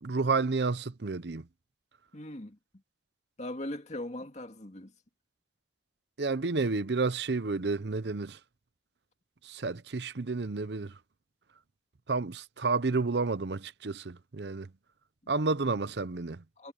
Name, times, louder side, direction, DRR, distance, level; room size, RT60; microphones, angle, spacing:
voice 1, 0.0-1.5 6.2-8.4 9.4-10.9 12.1-14.7 15.3-16.4, right 4 dB, 70° right, 0.8 m, -30 dB
voice 2, 2.1-2.6 3.4-4.9 15.2-15.3 16.6-16.7, left 1 dB, 40° left, 2.2 m, -39 dB
head